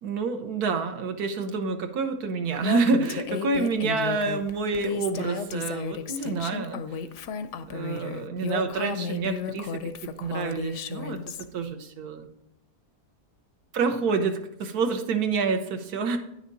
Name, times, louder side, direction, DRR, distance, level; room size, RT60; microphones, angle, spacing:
voice 1, 0.0-6.8 7.7-11.2 11.5-12.3 13.7-16.2, right 4 dB, 75° right, 6 dB, 1.3 m, -28 dB
Female speech woman speaking, 2.6-11.4, left 7 dB, 65° left, 0.7 m, -33 dB
9.5 x 6.4 x 4.0 m, 0.78 s
omnidirectional pair, 1.7 m